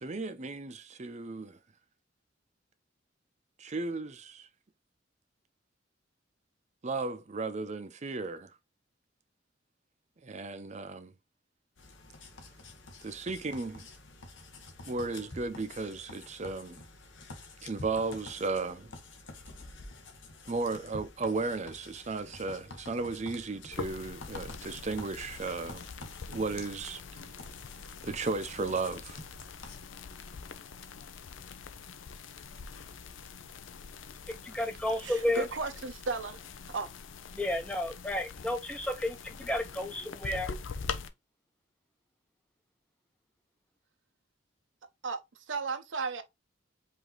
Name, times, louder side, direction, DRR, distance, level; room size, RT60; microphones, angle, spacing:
voice 1, 0.0-1.6 3.6-4.5 6.8-8.5 10.2-11.1 13.0-13.9 14.9-16.8 17.6-18.9 20.5-25.8 26.3-27.0 28.0-29.2, right 3 dB, 35° right, 0.6 m, -35 dB
sound 1, 11.8-29.8, left 2 dB, 70° left, 1.1 m, -49 dB
sound 2, 23.7-41.1, left 5 dB, 85° left, 0.6 m, -44 dB
voice 2, 34.3-35.5 37.3-40.5, left 1 dB, 5° left, 0.6 m, -32 dB
voice 3, 35.0-36.4 36.7-36.9 45.0-45.2 45.5-46.2, right 4 dB, 80° right, 0.7 m, -34 dB
5.0 x 2.8 x 3.8 m
head